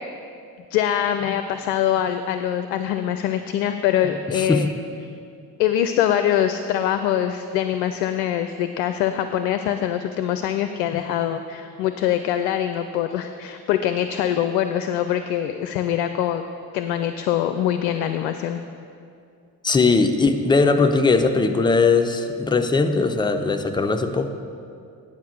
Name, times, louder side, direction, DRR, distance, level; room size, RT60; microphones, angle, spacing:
voice 1, 0.7-4.7 5.6-16.4 16.7-18.6, left 10 dB, 65° left, 9 dB, 0.5 m, -23 dB
voice 2, 4.3-4.7 19.6-24.3, left 4 dB, 10° left, 6 dB, 0.4 m, -19 dB
9.3 x 5.1 x 6.6 m, 2.4 s
figure-of-eight pair, 45°, 48 cm